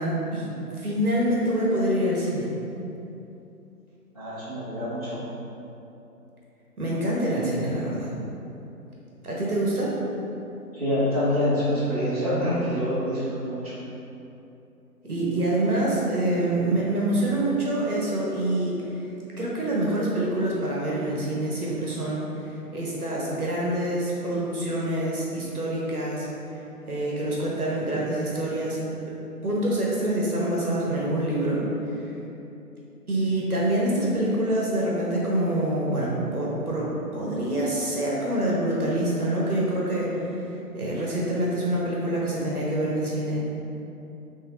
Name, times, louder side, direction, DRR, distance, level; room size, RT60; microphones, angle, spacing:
voice 1, 0.0-2.5 6.8-8.1 9.2-9.9 15.1-19.0 19.4-26.3 26.9-28.8 29.4-31.6 33.1-40.1 40.7-43.5, right 1 dB, 70° right, -5 dB, 1.2 m, -26 dB
voice 2, 4.1-5.2 10.7-13.7, equal, 25° right, -14 dB, 1.1 m, -26 dB
5.7 x 3.3 x 2.5 m, 2.9 s
figure-of-eight pair, 160°, 47 cm